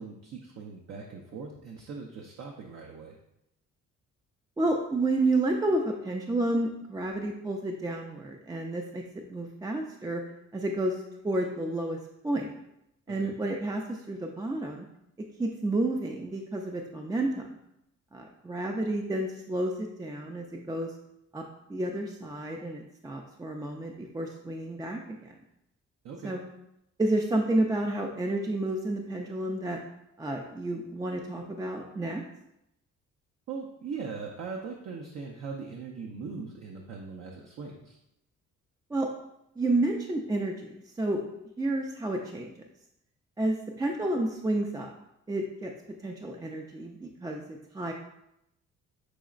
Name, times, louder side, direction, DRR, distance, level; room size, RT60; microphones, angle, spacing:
voice 1, 0.0-3.1 13.1-13.3 26.0-26.4 33.5-38.0, right 5 dB, 60° right, -1 dB, 0.6 m, -40 dB
voice 2, 4.6-10.2 10.5-12.0 12.2-12.5 13.1-14.9 15.4-17.5 18.1-20.9 21.3-21.4 21.7-25.4 26.2-26.4 27.0-29.8 30.2-32.2 38.9-39.1 39.6-40.7 41.0-41.2 41.6-42.5 43.4-44.9 45.3-45.7 46.0-47.4 47.7-47.9, right 2 dB, 15° right, 2 dB, 0.3 m, -30 dB
6.2 x 3.0 x 2.4 m, 0.83 s
cardioid pair, 90°, 30 cm